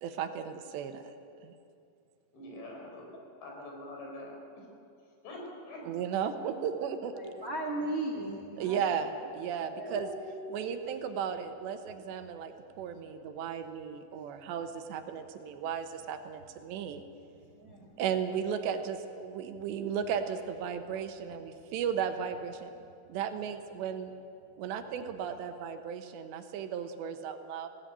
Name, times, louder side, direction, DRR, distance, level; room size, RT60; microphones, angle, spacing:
voice 1, 0.0-1.0 1.4-1.5 5.9-7.1 8.6-10.1 10.5-17.0 18.0-22.7 23.1-24.1 24.6-27.7, right 7 dB, 80° right, 7 dB, 3.2 m, -35 dB
voice 2, 2.3-4.7 5.2-5.9 6.2-6.3 9.8-11.4, equal, 85° left, 0 dB, 6.9 m, -44 dB
voice 3, 7.1-8.8 9.5-9.9 17.5-17.9, right 1 dB, 50° right, 2 dB, 0.9 m, -36 dB
19.5 x 17.5 x 8.9 m, 2.5 s
omnidirectional pair, 5.2 m